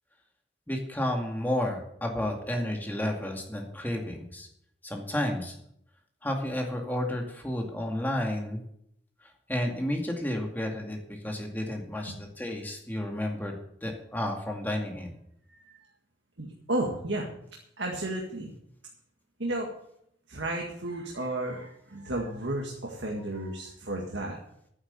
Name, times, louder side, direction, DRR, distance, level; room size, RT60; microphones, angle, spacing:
voice 1, 0.7-4.5 4.8-5.5 6.2-8.6 9.5-13.5 13.8-15.1, left 1 dB, 10° left, 1 dB, 2.2 m, -31 dB
voice 2, 16.4-17.3 17.8-18.5 19.4-19.7 20.3-24.4, right 1 dB, 85° right, 0 dB, 2.0 m, -33 dB
11.0 x 9.6 x 6.8 m, 0.73 s
head